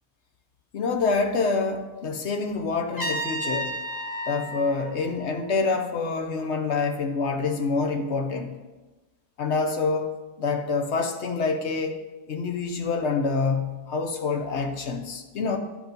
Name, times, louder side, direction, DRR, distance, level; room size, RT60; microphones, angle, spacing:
voice 1, 0.7-3.7 4.3-8.5 9.4-10.1 10.4-12.0 12.3-15.6, left 4 dB, 55° left, 5 dB, 1.0 m, -26 dB
Trumpet, 3.0-5.9, equal, 15° left, 1.3 m, -33 dB
10.5 x 5.0 x 5.2 m, 1.2 s
omnidirectional pair, 1.5 m